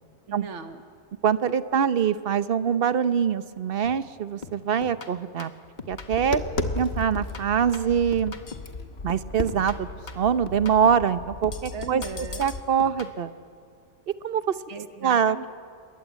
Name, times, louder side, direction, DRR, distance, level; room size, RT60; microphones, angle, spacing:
voice 1, 0.3-0.8 11.7-12.5 14.7-15.5, right 6 dB, 85° right, 7 dB, 1.5 m, -37 dB
voice 2, 1.2-5.5 5.9-6.4 6.7-8.3 9.0-9.9 10.2-12.0 12.4-13.3 14.2-14.5 15.0-15.4, right 7 dB, 55° right, 14 dB, 1.0 m, -24 dB
sound 1, 3.8-4.1 4.4-6.5 6.8-8.8 9.1-11.1 11.4-13.2, left 4 dB, 40° left, 1.4 m, -42 dB
Tap, 5.9-12.6, left 2 dB, 60° left, 1.6 m, -34 dB
28.0 x 22.0 x 8.3 m, 2.4 s
omnidirectional pair, 1.2 m